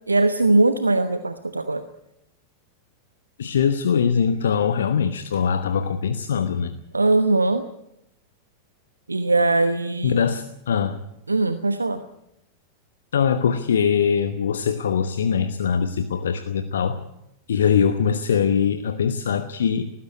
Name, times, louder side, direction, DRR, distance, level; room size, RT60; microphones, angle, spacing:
voice 1, 0.0-1.8 6.9-7.6 9.1-10.2 11.3-12.0, right 2 dB, 80° right, 11 dB, 1.0 m, -20 dB
voice 2, 3.4-6.7 10.0-11.0 13.1-17.0 17.5-19.9, left 7 dB, 65° left, 11 dB, 1.0 m, -22 dB
19.0 x 15.5 x 9.7 m, 0.82 s
figure-of-eight pair, 90°, 0 cm